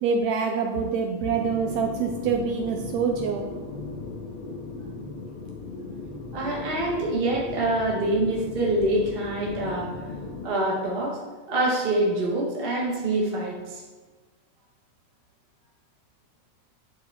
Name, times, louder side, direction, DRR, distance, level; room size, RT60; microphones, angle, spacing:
voice 1, 0.0-3.5, right 5 dB, 80° right, 3 dB, 1.7 m, -25 dB
sound 1, 1.2-10.5, left 3 dB, 50° left, 1.8 m, -37 dB
voice 2, 6.3-9.9 10.4-11.2 11.5-13.8, right 1 dB, 25° right, -4 dB, 1.3 m, -25 dB
10.5 x 4.4 x 3.7 m, 1.3 s
omnidirectional pair, 3.4 m